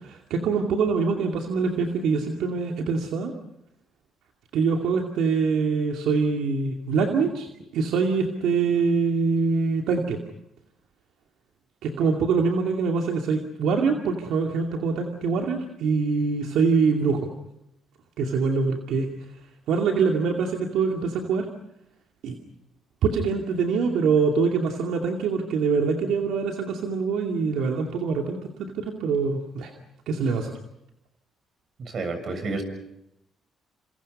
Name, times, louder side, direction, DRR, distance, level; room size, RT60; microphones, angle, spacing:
voice 1, 0.0-3.3 4.5-7.5 7.7-10.2 11.8-17.2 18.2-19.1 19.7-21.5 22.2-22.4 23.0-28.4 28.8-29.7 30.1-30.5, right 5 dB, 85° right, 2 dB, 2.5 m, -24 dB
voice 2, 31.8-32.6, right 3 dB, 55° right, 8 dB, 7.1 m, -30 dB
28.5 x 27.5 x 5.5 m, 0.81 s
cardioid pair, 90°, 0 cm